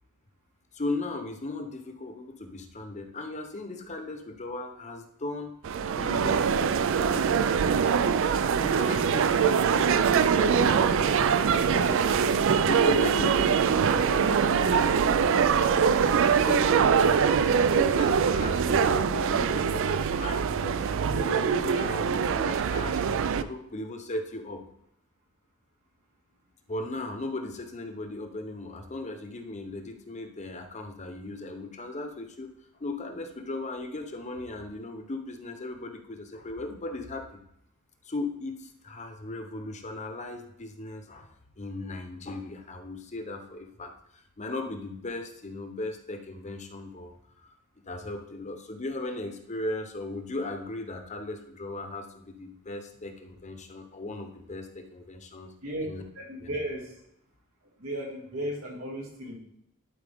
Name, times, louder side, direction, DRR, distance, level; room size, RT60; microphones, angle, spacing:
voice 1, 0.7-5.5 6.0-8.1 8.6-16.6 17.2-23.0 23.4-24.6 26.7-32.5 32.8-37.4 38.0-41.3 41.6-47.1 47.4-47.5 47.9-55.5 55.8-56.0 56.4-56.5, left 2 dB, 35° left, 6 dB, 0.9 m, -37 dB
sound 1, 5.6-23.4, right 6 dB, 65° right, 0.4 m, -23 dB
voice 2, 56.2-56.9 57.8-59.3, right 1 dB, 85° right, -1 dB, 2.5 m, -35 dB
12.0 x 4.7 x 3.5 m, 0.77 s
head